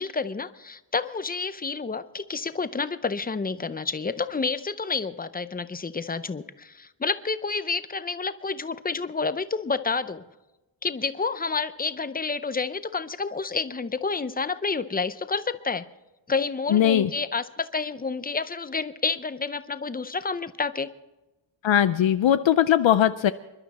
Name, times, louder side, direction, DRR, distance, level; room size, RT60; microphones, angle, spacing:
voice 1, 0.0-10.2 10.8-15.8 16.3-20.9, left 4 dB, 20° left, 13 dB, 0.5 m, -29 dB
voice 2, 16.7-17.1 21.6-23.3, left 10 dB, 65° left, 11 dB, 0.6 m, -20 dB
26.5 x 12.0 x 4.2 m, 1.0 s
wide cardioid pair, 170°, 49 cm